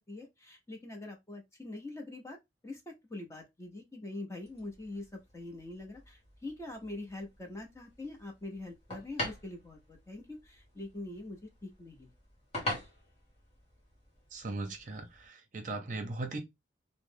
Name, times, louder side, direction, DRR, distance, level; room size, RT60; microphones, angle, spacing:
voice 1, 0.1-2.4 2.6-12.1, left 2 dB, 15° left, 0.7 m, -44 dB
sound 1, 4.4-15.3, left 1 dB, 30° left, 1.3 m, -45 dB
voice 2, 14.3-16.4, right 2 dB, 45° right, 0.7 m, -38 dB
3.1 x 2.0 x 3.6 m
head